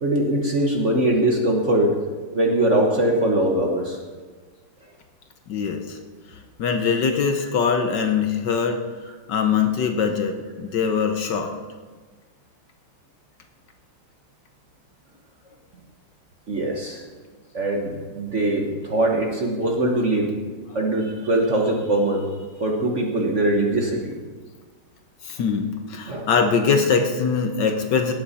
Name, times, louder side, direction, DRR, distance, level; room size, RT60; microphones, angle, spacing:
voice 1, 0.0-1.9 2.3-4.0 16.5-17.0 17.5-20.3 20.7-22.3 22.6-24.2 26.1-26.3, right 1 dB, 40° right, 1 dB, 1.2 m, -22 dB
voice 2, 5.5-6.0 6.3-8.8 9.3-11.5 25.2-28.1, left 6 dB, 65° left, 5 dB, 1.4 m, -22 dB
18.0 x 8.6 x 4.2 m, 1.4 s
omnidirectional pair, 2.3 m